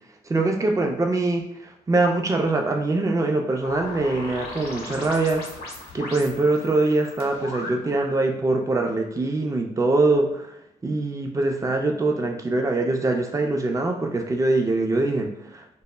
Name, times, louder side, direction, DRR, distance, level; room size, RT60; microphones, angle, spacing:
voice 1, 0.3-5.5 5.9-15.8, right 2 dB, 20° right, 3 dB, 0.5 m, -23 dB
sound 1, 3.6-8.2, left 2 dB, 70° left, 0.7 m, -38 dB
2.0 x 2.0 x 3.3 m, 0.81 s
hypercardioid pair, 45°, 17 cm